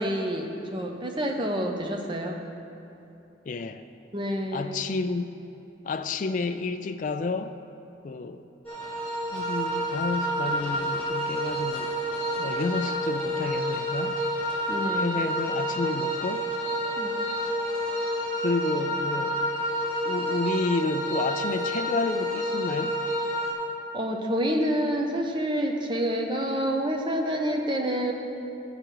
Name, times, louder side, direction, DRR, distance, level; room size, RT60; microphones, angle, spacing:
voice 1, 0.0-2.4 4.1-5.1 14.7-15.3 17.0-17.1 23.9-28.1, equal, 25° right, 2 dB, 0.7 m, -28 dB
voice 2, 3.5-3.8 4.5-5.3 5.8-7.5 8.0-8.4 9.3-12.0 12.4-14.2 15.0-16.5 18.4-19.4 20.0-23.0, left 3 dB, 40° left, 8 dB, 0.3 m, -30 dB
sound 1, 8.6-23.5, equal, 5° left, 1.6 m, -29 dB
14.0 x 5.0 x 4.6 m, 2.8 s
head